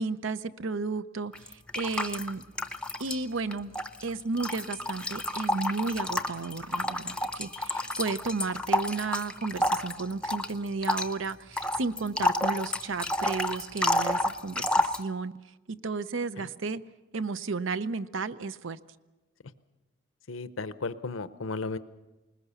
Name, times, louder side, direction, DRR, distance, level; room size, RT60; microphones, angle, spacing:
voice 1, 0.0-2.4 3.0-3.7 4.0-15.3 15.7-16.8 17.1-18.8, right 4 dB, 80° right, 15 dB, 0.6 m, -33 dB
sound 1, 1.3-3.2 3.5-15.0, left 1 dB, 5° left, 0.6 m, -30 dB
voice 2, 20.3-21.8, left 3 dB, 90° left, 13 dB, 0.8 m, -34 dB
20.5 x 20.5 x 7.0 m, 1.1 s
head